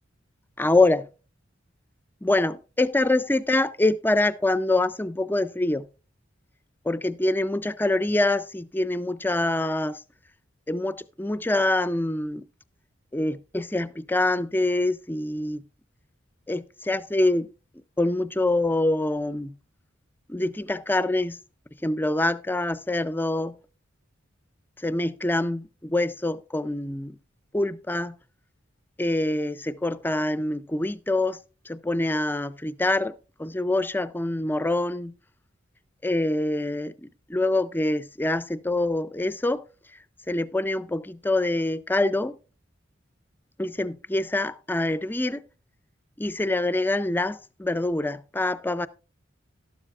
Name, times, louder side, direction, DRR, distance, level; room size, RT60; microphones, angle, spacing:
voice 1, 0.6-1.1 2.2-5.9 6.8-10.0 10.7-12.4 13.1-15.6 16.5-17.5 18.0-19.5 20.3-21.4 21.8-23.6 24.8-27.2 27.5-28.2 29.0-31.4 31.7-35.1 36.0-39.6 40.3-42.4 43.6-45.4 46.2-48.9, left 2 dB, 10° left, 0.4 m, -25 dB
12.5 x 12.0 x 2.4 m
head